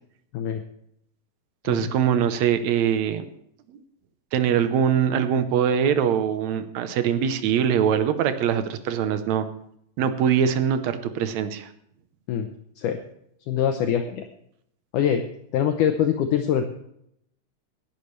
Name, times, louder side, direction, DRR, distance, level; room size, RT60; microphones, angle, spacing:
voice 1, 1.6-3.2 3.7-3.8 4.3-9.4 10.0-11.7, right 8 dB, 70° right, 9 dB, 1.7 m, -22 dB
voice 2, 13.5-14.3 14.9-15.2 15.5-16.7, left 9 dB, 70° left, 6 dB, 2.1 m, -23 dB
17.5 x 12.0 x 3.2 m, 0.73 s
omnidirectional pair, 4.2 m